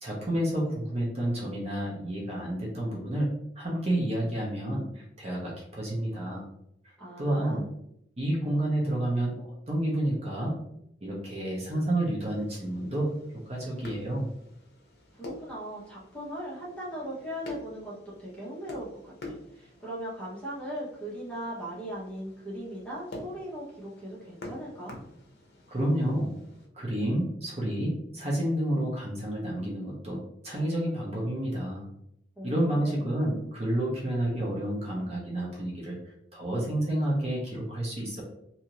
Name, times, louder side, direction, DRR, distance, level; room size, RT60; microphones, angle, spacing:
voice 1, 0.0-3.3 3.6-6.4 7.2-7.6 8.2-10.5 11.0-13.1 13.5-14.3 25.7-26.3 26.7-30.2 30.4-31.8 32.4-36.0 36.3-38.2, right 1 dB, 35° right, -4 dB, 0.7 m, -29 dB
voice 2, 7.0-7.6 15.1-25.0 32.4-33.0, equal, 5° left, -7 dB, 0.9 m, -39 dB
sound 1, 12.2-26.7, left 2 dB, 60° left, 0.7 m, -47 dB
2.7 x 2.5 x 2.9 m, 0.76 s
head